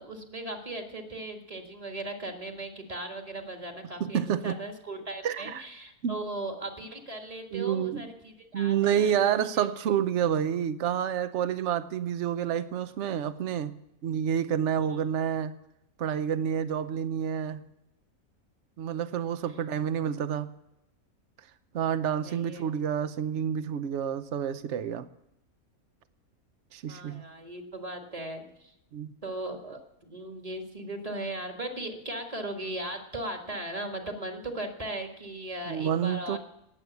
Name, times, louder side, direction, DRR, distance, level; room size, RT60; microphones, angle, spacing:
voice 1, 0.0-9.7 14.9-15.0 22.2-22.7 26.9-28.7 29.2-36.4, right 1 dB, 25° right, 4 dB, 1.7 m, -38 dB
voice 2, 4.0-4.6 5.2-5.6 6.0-6.2 7.5-8.1 8.5-13.7 14.0-15.6 16.0-17.6 18.8-20.5 21.7-25.0 26.7-27.2 28.9-29.1 35.7-36.4, right 9 dB, 60° right, 13 dB, 1.0 m, -29 dB
18.5 x 7.9 x 7.1 m, 0.83 s
omnidirectional pair, 1.5 m